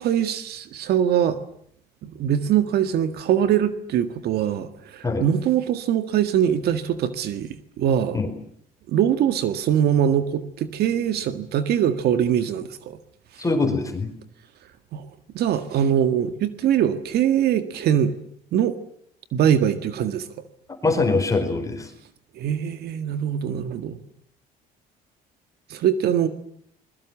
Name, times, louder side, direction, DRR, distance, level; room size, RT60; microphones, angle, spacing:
voice 1, 0.0-1.4 2.0-8.2 8.9-13.0 14.9-15.1 15.3-18.1 18.5-18.8 19.3-20.3 22.4-24.0 25.7-26.3, right 9 dB, 70° right, 10 dB, 1.8 m, -22 dB
voice 2, 13.4-14.1 20.8-21.9, left 3 dB, 20° left, 6 dB, 4.6 m, -23 dB
29.0 x 21.5 x 7.4 m, 0.65 s
cardioid pair, 110°, 17 cm